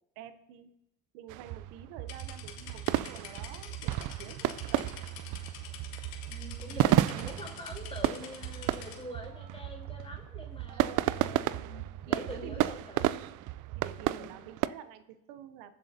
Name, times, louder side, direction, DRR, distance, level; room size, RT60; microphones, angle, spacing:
voice 1, 0.2-0.7 1.1-4.9 6.8-7.3 10.7-11.1 12.1-12.8 13.1-13.4 13.8-15.7, right 10 dB, 80° right, 12 dB, 0.8 m, -48 dB
sound 1, 1.3-14.7, right 14 dB, 55° right, 0.5 m, -32 dB
sound 2, 2.1-9.0, left 8 dB, 80° left, 1.8 m, -48 dB
voice 2, 6.3-13.1 14.2-14.5, left 1 dB, 15° left, 1 dB, 3.6 m, -45 dB
20.5 x 7.6 x 2.7 m, 0.82 s
supercardioid pair, 70°, 37 cm